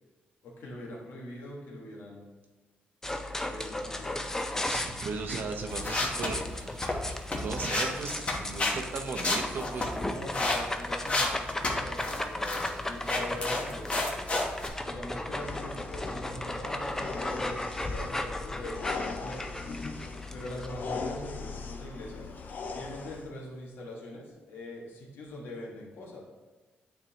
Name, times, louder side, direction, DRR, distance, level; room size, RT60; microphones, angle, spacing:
voice 1, 0.4-2.3 3.4-4.3 9.9-14.1 14.9-19.4 20.3-22.3 22.7-26.2, left 1 dB, 80° left, -2 dB, 1.5 m, -42 dB
sound 1, 3.0-20.7, left 1 dB, 15° left, 0.5 m, -36 dB
voice 2, 4.7-6.9 7.4-9.9, right 4 dB, 65° right, 4 dB, 0.8 m, -36 dB
sound 2, 5.7-8.7 9.1-10.6 11.0-12.2 12.4-12.7 13.1-14.7, left 2 dB, 35° left, 1.1 m, -30 dB
sound 3, 15.3-23.3, left 4 dB, 55° left, 0.7 m, -40 dB
9.3 x 3.8 x 2.9 m, 1.3 s
cardioid pair, 100°, 4 cm